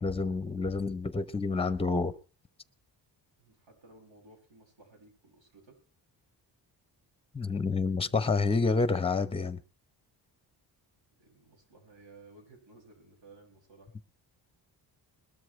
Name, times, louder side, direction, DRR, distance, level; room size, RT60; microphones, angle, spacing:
voice 1, 0.0-2.1 7.3-9.6, left 4 dB, 15° left, 0.8 m, -28 dB
voice 2, 3.4-5.8 11.2-14.0, right 2 dB, 90° right, 6.7 m, -57 dB
21.0 x 13.0 x 3.2 m
cardioid pair, 140°, 42 cm